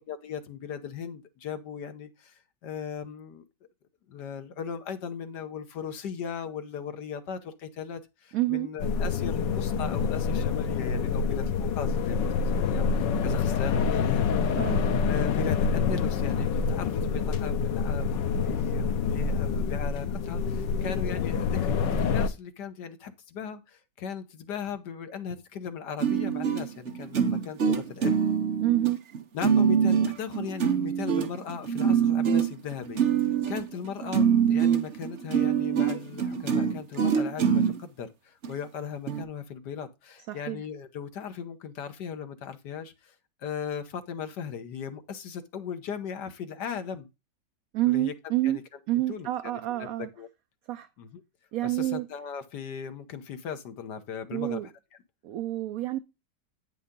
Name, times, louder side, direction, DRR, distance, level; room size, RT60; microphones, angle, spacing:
voice 1, 0.0-3.4 4.1-14.6 15.1-28.2 29.3-33.0 33.5-47.1 47.9-48.6 49.1-50.3 51.0-51.2 51.6-54.7, left 7 dB, 70° left, 1.6 m, -38 dB
voice 2, 8.3-8.7 14.6-14.9 28.6-29.0 40.3-40.6 47.7-48.6 48.9-50.1 50.7-50.9 51.5-52.1 54.3-54.7 55.2-56.0, right 16 dB, 70° right, 0.9 m, -28 dB
sound 1, 8.8-22.3, left 5 dB, 90° left, 1.5 m, -27 dB
sound 2, 26.0-37.8 38.4-38.5 39.1-39.2, right 7 dB, 45° right, 1.1 m, -24 dB
9.3 x 5.6 x 3.7 m
omnidirectional pair, 1.9 m